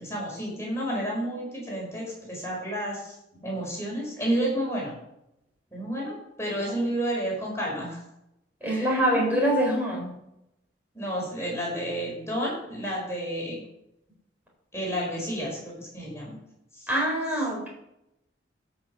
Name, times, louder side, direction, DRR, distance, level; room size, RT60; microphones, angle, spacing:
voice 1, 0.0-3.1 3.4-5.0 5.7-8.0 8.6-9.2 10.9-13.6 14.7-16.3 16.8-16.9, equal, 15° left, -3 dB, 4.6 m, -31 dB
voice 2, 8.6-10.1 16.9-17.7, right 1 dB, 10° right, -3 dB, 4.3 m, -24 dB
12.5 x 5.9 x 6.2 m, 0.84 s
head